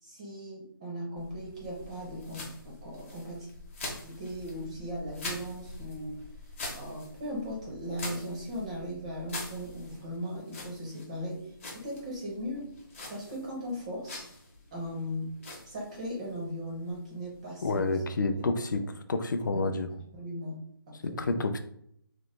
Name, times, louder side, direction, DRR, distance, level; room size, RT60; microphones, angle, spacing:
voice 1, 0.0-3.5 4.0-6.3 6.7-12.8 13.1-14.3 14.7-15.3 15.6-18.0 18.3-18.6 19.5-21.4, equal, 15° right, -2 dB, 0.5 m, -38 dB
sound 1, 1.2-18.4, left 2 dB, 35° left, 0.8 m, -45 dB
voice 2, 17.6-18.8 19.1-19.9 21.2-21.6, left 3 dB, 55° left, 8 dB, 0.4 m, -29 dB
3.0 x 2.0 x 3.1 m, 0.69 s
figure-of-eight pair, 160°, 12 cm